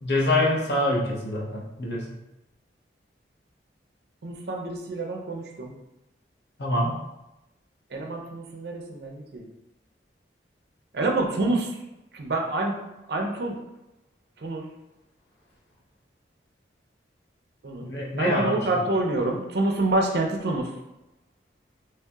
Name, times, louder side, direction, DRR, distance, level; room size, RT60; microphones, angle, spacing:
voice 1, 0.0-2.1 6.6-6.9 17.8-18.6, left 1 dB, 65° left, -3 dB, 0.7 m, -25 dB
voice 2, 4.2-5.7 7.9-9.5 10.9-11.7 12.1-12.7 13.1-13.6 14.4-14.6 17.6-17.9 18.2-20.7, right 2 dB, 60° right, 2 dB, 0.5 m, -27 dB
3.2 x 2.7 x 2.3 m, 0.94 s
head